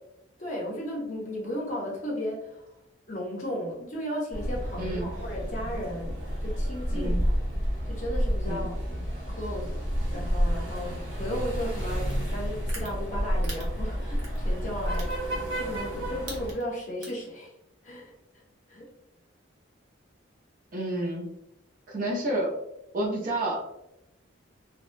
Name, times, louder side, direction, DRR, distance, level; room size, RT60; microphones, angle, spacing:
voice 1, 0.4-2.7 3.1-7.3 7.9-8.8 9.3-9.7 10.1-17.5 17.8-18.1 18.7-18.9, equal, 35° left, -3 dB, 0.7 m, -35 dB
sound 1, 4.3-16.5, equal, 85° right, 1.3 m, -30 dB
voice 2, 4.8-5.1 6.9-7.2 8.5-8.7 20.7-21.3 21.9-22.5 22.9-23.6, right 1 dB, 40° right, -2 dB, 0.6 m, -30 dB
sound 2, 12.1-12.2 12.7-12.9 13.4-13.6 14.2-14.4 14.9-15.1 15.7-15.9 16.2-16.6 17.0-17.3, right 3 dB, 70° right, 0.8 m, -39 dB
2.8 x 2.1 x 2.4 m, 0.85 s
head